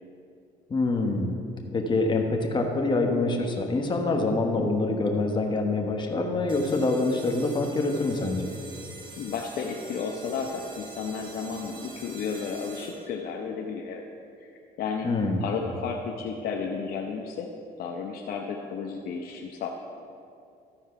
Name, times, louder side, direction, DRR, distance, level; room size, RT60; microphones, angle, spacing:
voice 1, 0.7-1.4 1.7-8.5 15.0-15.4, left 2 dB, 25° left, 2 dB, 1.2 m, -25 dB
sound 1, 6.5-13.3, right 2 dB, 30° right, 1.2 m, -45 dB
voice 2, 9.2-14.0 14.4-15.1 15.4-17.5 17.8-19.7, left 5 dB, 65° left, 0 dB, 0.8 m, -33 dB
13.5 x 4.6 x 5.7 m, 2.5 s
cardioid pair, 110°, 17 cm